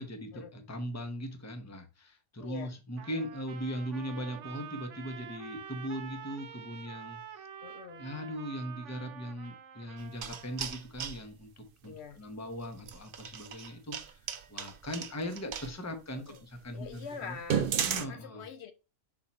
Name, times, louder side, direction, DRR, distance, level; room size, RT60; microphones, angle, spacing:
voice 1, 0.0-7.4 8.0-14.2 14.5-17.4 17.9-18.5, equal, 15° left, 0.8 m, -39 dB
voice 2, 2.4-2.7 7.6-8.0 11.8-12.2 16.1-16.4 16.7-17.7 18.1-18.7, left 6 dB, 70° left, 0.9 m, -44 dB
Trumpet, 3.0-10.8, right 8 dB, 80° right, 1.0 m, -47 dB
sound 1, 10.0-11.2 12.8-15.7 16.3-16.4 16.8-16.9 17.4-18.1, right 8 dB, 55° right, 0.7 m, -34 dB
5.6 x 4.4 x 4.1 m
omnidirectional pair, 1.2 m